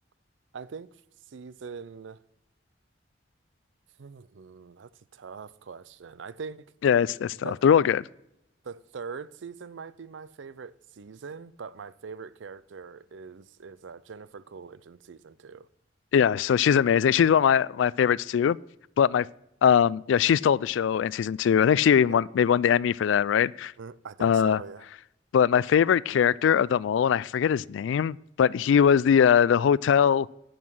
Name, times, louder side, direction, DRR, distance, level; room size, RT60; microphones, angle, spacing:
voice 1, 0.5-0.9 1.3-2.2 4.0-6.7 7.4-7.6 8.6-15.7 22.1-22.3 23.8-24.8, right 5 dB, 80° right, 0.5 m, -42 dB
voice 2, 6.8-8.0 16.1-18.6 19.0-19.3 19.6-23.7 24.2-24.6 25.3-30.3, left 8 dB, 80° left, 0.3 m, -21 dB
11.0 x 7.8 x 6.4 m
head